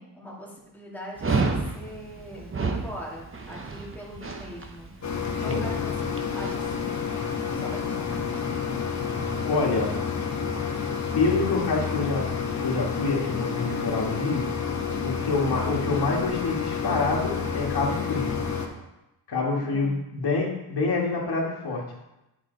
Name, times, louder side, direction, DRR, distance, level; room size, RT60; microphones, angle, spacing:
voice 1, 0.0-2.5 2.8-4.9 5.4-7.0 7.3-8.5 19.6-20.0, equal, 5° left, -4 dB, 2.0 m, -41 dB
Dog, 1.2-6.6, right 4 dB, 30° right, 0.8 m, -31 dB
sound 1, 5.0-18.7, left 6 dB, 40° left, 1.1 m, -29 dB
voice 2, 9.4-9.9 11.1-14.4 15.0-18.3 19.3-22.0, left 3 dB, 60° left, -2 dB, 1.9 m, -27 dB
8.7 x 5.1 x 4.0 m, 0.93 s
wide cardioid pair, 110°, 42 cm